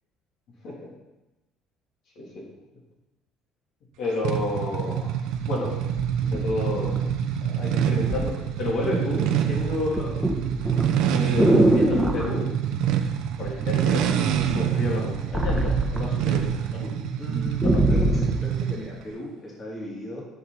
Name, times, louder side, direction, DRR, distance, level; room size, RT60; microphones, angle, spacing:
voice 1, 4.0-5.1 5.4-5.7 6.2-7.1 7.4-12.5 13.4-16.4 16.7-17.0 17.6-17.8, left 2 dB, 65° left, -4 dB, 3.3 m, -31 dB
sound 1, 4.2-18.9, right 9 dB, 80° right, 1.0 m, -26 dB
sound 2, 5.3-5.4 6.0-7.5 8.1-8.3 8.7-9.1 9.4-12.3 13.4-13.9 14.3-16.5 16.9-17.0 17.3-18.4 19.1-19.2, right 1 dB, 5° right, 1.4 m, -23 dB
voice 2, 17.2-20.2, right 1 dB, 30° left, -4 dB, 3.2 m, -36 dB
15.5 x 6.4 x 4.2 m, 1.0 s
cardioid pair, 120°, 0 cm